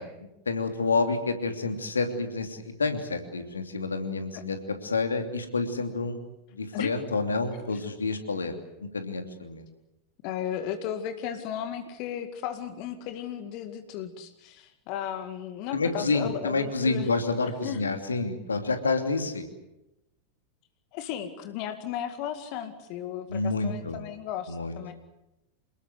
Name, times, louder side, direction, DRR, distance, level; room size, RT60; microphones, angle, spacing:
voice 1, 0.0-6.2 6.5-8.5 8.8-9.6 15.7-19.5 23.3-24.0 24.5-24.8, left 3 dB, 75° left, 7 dB, 2.9 m, -29 dB
voice 2, 10.2-17.1 17.4-17.8 20.9-24.9, left 9 dB, 45° left, 8 dB, 2.1 m, -35 dB
27.5 x 20.0 x 8.0 m, 0.92 s
figure-of-eight pair, 90°, 0 cm